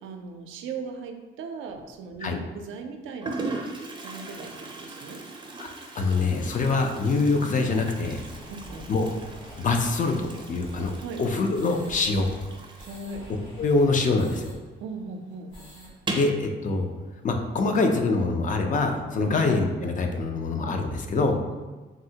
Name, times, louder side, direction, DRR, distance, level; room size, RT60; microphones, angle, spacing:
voice 1, 0.0-3.7 4.0-5.2 8.5-9.0 11.0-11.2 12.8-13.2 14.8-15.5 19.2-19.4 21.5-21.6, right 4 dB, 80° right, 5 dB, 0.4 m, -38 dB
Toilet flush, 1.7-2.2 2.9-3.0 3.2-14.5 14.8-14.9 15.2-15.3 15.9-16.4, right 2 dB, 25° right, 0.5 m, -39 dB
voice 2, 6.0-8.2 8.9-9.1 9.6-10.9 11.2-12.3 13.6-14.5 16.1-16.9 17.2-21.4, left 3 dB, 40° left, 4 dB, 0.4 m, -24 dB
sound 1, 8.0-14.6 14.9-15.0 15.3-15.9, equal, 75° left, 1.4 m, -45 dB
3.6 x 2.1 x 2.7 m, 1.3 s
cardioid pair, 90°, 20 cm